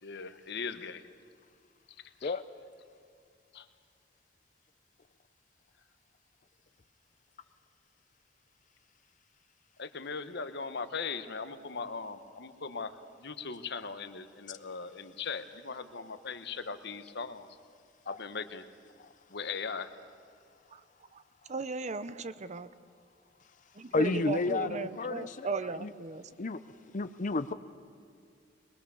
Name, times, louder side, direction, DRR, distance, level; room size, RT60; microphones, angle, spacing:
voice 1, 0.0-1.1 2.0-2.3 3.5-3.7 9.8-17.5 18.0-18.6 19.3-19.9, left 5 dB, 65° left, 10 dB, 1.2 m, -39 dB
voice 2, 21.5-22.7 23.7-26.3, right 3 dB, 40° right, 14 dB, 0.7 m, -36 dB
voice 3, 23.9-25.5 25.8-25.9 26.4-26.6 26.9-27.5, left 3 dB, 45° left, 11 dB, 0.6 m, -31 dB
23.0 x 21.0 x 7.0 m, 2.3 s
head